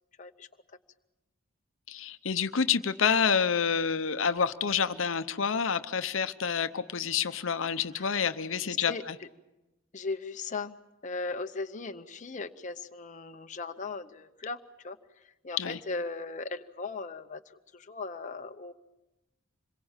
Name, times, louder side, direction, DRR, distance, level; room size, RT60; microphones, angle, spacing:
voice 1, 1.9-9.2 15.6-15.8, left 6 dB, 70° left, 11 dB, 0.8 m, -28 dB
voice 2, 8.6-9.0 9.9-10.7 11.0-14.6 14.8-15.0 15.4-17.4 17.7-18.7, left 3 dB, 35° left, 6 dB, 0.8 m, -37 dB
26.5 x 22.0 x 7.3 m, 1.0 s
head